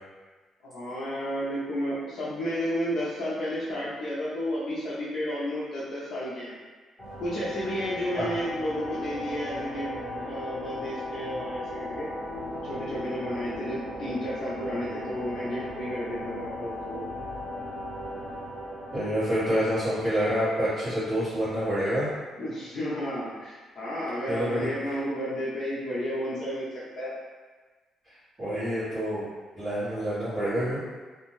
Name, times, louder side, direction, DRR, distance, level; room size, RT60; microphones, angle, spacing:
voice 1, 0.6-6.5 7.2-9.9 10.2-12.1 12.6-17.0 22.4-27.1, equal, 50° left, -8 dB, 0.5 m, -32 dB
sound 1, 7.0-20.6, left 1 dB, 15° left, 1.0 m, -37 dB
voice 2, 18.9-22.1 24.3-25.0 28.0-29.3 29.5-30.8, equal, 25° right, -17 dB, 1.2 m, -28 dB
2.5 x 2.2 x 3.0 m, 1.3 s
cardioid pair, 160°, 0 cm